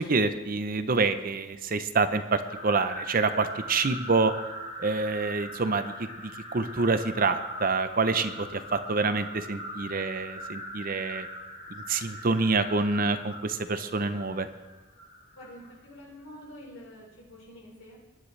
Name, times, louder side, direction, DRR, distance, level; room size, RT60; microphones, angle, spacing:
voice 1, 0.0-4.3 4.8-11.3 11.7-14.5, right 3 dB, 40° right, 10 dB, 0.6 m, -27 dB
sound 1, 2.3-15.7, equal, 60° left, 2.9 m, -41 dB
voice 2, 15.3-18.0, equal, 80° left, -3 dB, 4.5 m, -47 dB
21.0 x 9.7 x 3.3 m, 1.1 s
head